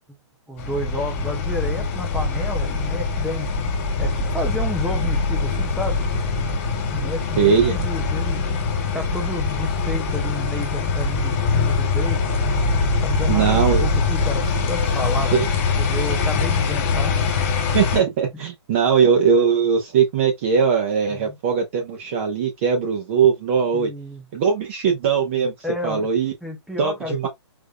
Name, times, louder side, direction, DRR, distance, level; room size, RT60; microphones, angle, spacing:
voice 1, 0.5-3.5 4.0-6.0 6.9-8.4 8.9-12.2 13.0-15.5 15.8-17.2 21.1-21.4 23.7-24.2 25.6-26.1 26.4-27.3, left 1 dB, ahead, 0.4 m, -31 dB
sound 1, 0.6-18.0, left 4 dB, 25° left, 1.6 m, -23 dB
voice 2, 7.4-7.8 13.3-13.8 15.3-15.5 17.7-23.9 24.3-25.5 25.8-26.3 26.8-27.3, right 6 dB, 25° right, 0.8 m, -20 dB
5.1 x 3.4 x 2.2 m
hypercardioid pair, 170°, 15 cm